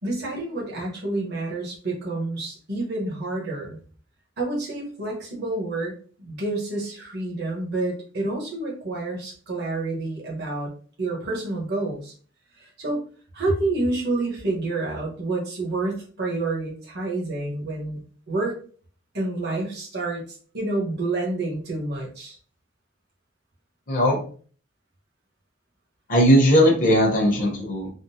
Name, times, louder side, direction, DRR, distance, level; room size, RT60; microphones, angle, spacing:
voice 1, 0.0-3.8 4.4-10.7 11.0-12.1 12.6-13.0 13.3-18.6 19.1-22.3, right 2 dB, 55° right, -3 dB, 1.0 m, -28 dB
voice 2, 26.1-27.9, equal, 45° left, -2 dB, 0.8 m, -18 dB
3.6 x 2.0 x 2.7 m, 0.43 s
head